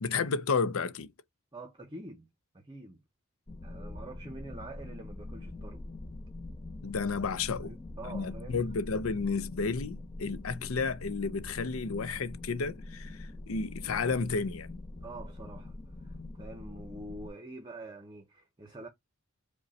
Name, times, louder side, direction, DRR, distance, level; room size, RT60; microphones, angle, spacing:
voice 1, 0.0-1.1 6.8-7.7 8.0-14.7, left 4 dB, 75° left, 0.6 m, -32 dB
voice 2, 1.5-2.3 2.5-3.0 3.6-5.9 7.6-8.6 15.0-18.9, right 2 dB, 20° right, 0.7 m, -46 dB
sound 1, 3.5-17.3, left 2 dB, 25° left, 0.6 m, -43 dB
5.2 x 2.2 x 4.1 m
head